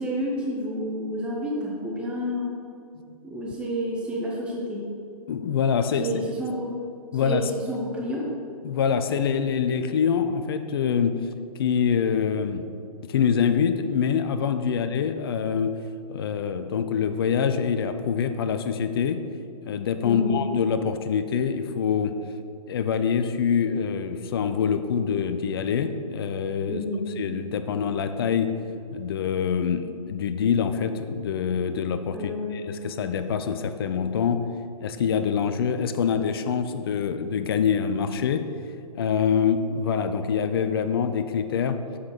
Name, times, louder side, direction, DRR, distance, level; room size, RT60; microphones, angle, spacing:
voice 1, 0.0-2.6 3.2-4.9 6.0-6.8 7.2-8.3 20.0-20.4 26.7-27.1 32.1-32.7, equal, 5° right, -3 dB, 0.8 m, -30 dB
voice 2, 5.3-6.1 7.1-7.5 8.6-11.2 11.6-12.6 13.1-15.7 16.1-19.2 19.7-22.1 22.7-26.8 27.2-28.5 28.9-32.2 32.7-34.4 34.8-38.4 38.9-41.8, left 7 dB, 40° left, 9 dB, 0.5 m, -25 dB
7.3 x 6.3 x 4.2 m, 2.3 s
figure-of-eight pair, 125°, 19 cm